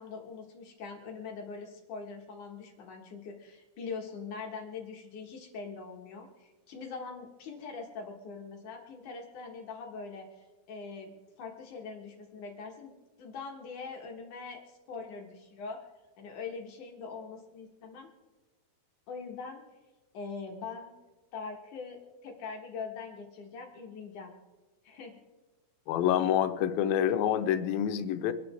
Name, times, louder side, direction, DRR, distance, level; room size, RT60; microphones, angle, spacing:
voice 1, 0.0-10.3 10.7-15.8 16.2-18.1 19.1-19.6 20.1-20.9 21.3-24.3 24.8-25.1, left 5 dB, 65° left, 1 dB, 2.8 m, -42 dB
voice 2, 25.9-28.3, left 10 dB, 85° left, 9 dB, 2.6 m, -27 dB
25.5 x 10.5 x 3.4 m, 1.2 s
omnidirectional pair, 4.1 m